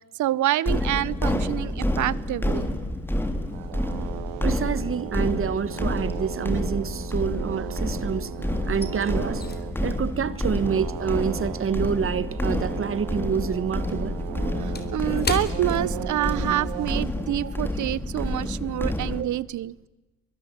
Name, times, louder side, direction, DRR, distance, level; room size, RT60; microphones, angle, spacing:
voice 1, 0.2-2.7 14.6-19.9, right 13 dB, 60° right, 0.8 m, -27 dB
sound 1, 0.7-19.2, left 1 dB, 5° left, 3.3 m, -29 dB
sound 2, 3.5-15.0 15.4-17.0, right 15 dB, 90° right, 1.6 m, -38 dB
voice 2, 4.4-8.3 8.7-9.4 9.8-14.2 17.4-17.5 19.1-19.3, right 7 dB, 40° right, 1.4 m, -27 dB
sound 3, 5.6-5.8 6.1-8.0 8.3-13.0 13.3-16.6 16.9-17.1 17.6-17.8, left 4 dB, 30° left, 3.6 m, -37 dB
23.0 x 23.0 x 9.0 m
supercardioid pair, 85°, 33 cm